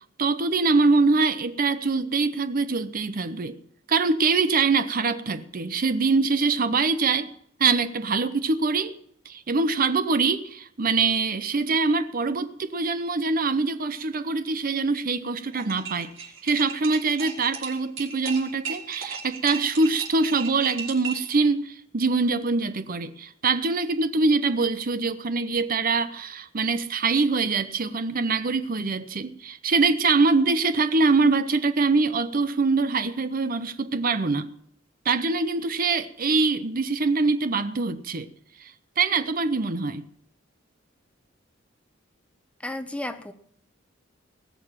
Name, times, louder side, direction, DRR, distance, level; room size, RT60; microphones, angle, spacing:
voice 1, 0.2-3.6 3.9-7.3 7.6-8.9 9.3-16.1 16.4-34.5 35.0-38.3 38.6-38.7 39.0-40.1, right 4 dB, 45° right, 0.7 m, -24 dB
sound 1, 15.5-21.3, right 6 dB, 85° right, 4.7 m, -37 dB
voice 2, 42.6-43.3, left 1 dB, 5° left, 0.8 m, -33 dB
20.0 x 6.9 x 7.4 m
head